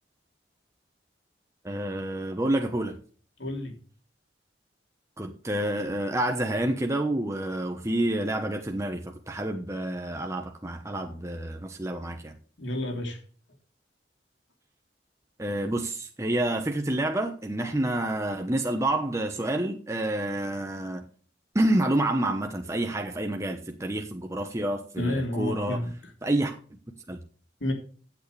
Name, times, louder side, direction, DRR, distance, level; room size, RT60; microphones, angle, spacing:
voice 1, 1.6-3.0 5.2-12.3 15.4-21.0 21.5-25.8 26.2-26.5 27.1-27.2, right 1 dB, 15° right, 1.0 m, -28 dB
voice 2, 3.4-3.7 12.6-13.2 25.0-25.9 27.6-27.7, left 1 dB, 80° left, 3.3 m, -30 dB
15.5 x 8.4 x 3.3 m
head